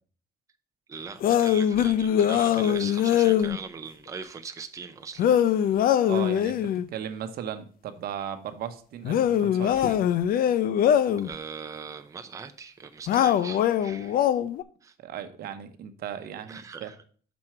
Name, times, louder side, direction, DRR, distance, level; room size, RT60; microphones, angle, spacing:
voice 1, 0.9-5.2 11.2-14.2 14.8-14.9 16.5-17.0, right 5 dB, 20° right, 6 dB, 0.6 m, -40 dB
sound 1, 1.2-3.6 5.2-6.8 9.0-11.3 13.1-14.6, left 10 dB, 60° left, 0.5 m, -22 dB
voice 2, 6.1-6.6 6.9-10.0 15.0-16.9, right 9 dB, 65° right, 9 dB, 0.9 m, -36 dB
6.2 x 4.4 x 5.9 m, 0.43 s
cardioid pair, 110°, 17 cm